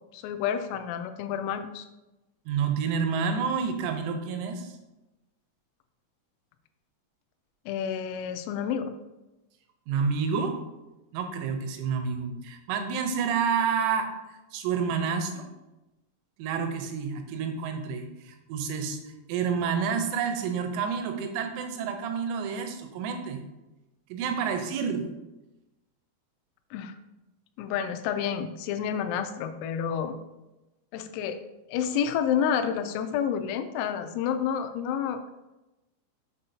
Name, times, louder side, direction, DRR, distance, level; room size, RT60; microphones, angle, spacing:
voice 1, 0.1-1.9 7.7-8.9 26.7-26.9 27.6-30.1 30.9-31.4 31.7-35.2, left 8 dB, 85° left, 8 dB, 3.3 m, -29 dB
voice 2, 2.5-4.8 9.9-10.6 11.1-14.1 14.5-15.5 16.4-23.4 24.1-25.1, right 6 dB, 85° right, 5 dB, 3.5 m, -29 dB
7.2 x 6.9 x 2.8 m, 1.0 s
omnidirectional pair, 6.0 m